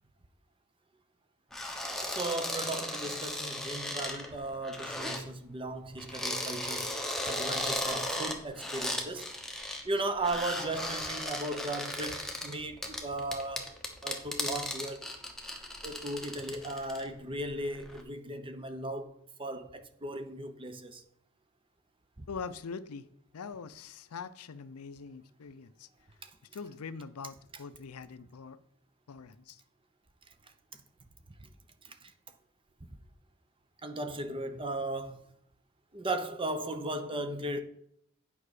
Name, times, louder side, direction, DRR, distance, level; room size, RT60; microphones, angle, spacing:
sound 1, 1.5-5.2 6.0-9.9 10.2-17.1 17.5-18.0, left 1 dB, ahead, 1.0 m, -36 dB
voice 1, 2.0-6.9 7.2-9.3 9.8-13.8 14.0-15.1 15.8-19.1 19.4-21.0 22.2-22.3 26.2-26.3 31.4-31.5 31.8-32.1 33.8-35.2 35.9-37.6, right 2 dB, 25° right, 0.7 m, -36 dB
voice 2, 22.3-23.0 23.3-25.9 26.5-28.6 29.1-29.6, left 5 dB, 85° left, 0.5 m, -43 dB
8.8 x 5.4 x 4.9 m
head